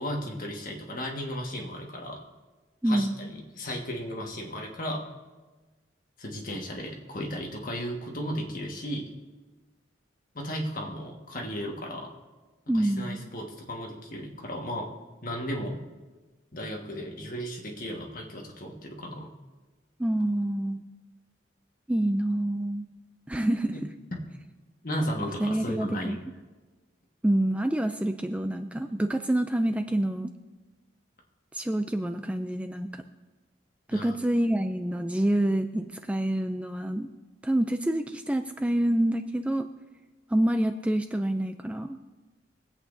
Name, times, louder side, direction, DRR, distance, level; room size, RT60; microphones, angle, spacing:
voice 1, 0.0-2.2 2.9-5.0 6.2-9.1 10.3-12.1 12.7-14.9 15.2-15.8 16.5-19.3 24.8-26.2 33.9-34.2, equal, 45° left, 0 dB, 1.5 m, -35 dB
voice 2, 2.8-3.2 12.7-13.2 20.0-20.8 21.9-22.8 23.3-23.8 25.4-26.2 27.2-30.3 31.5-33.0 33.9-37.1 37.4-39.7 40.3-42.0, right 1 dB, 5° right, 7 dB, 0.3 m, -27 dB
23.5 x 8.2 x 2.7 m, 1.3 s
head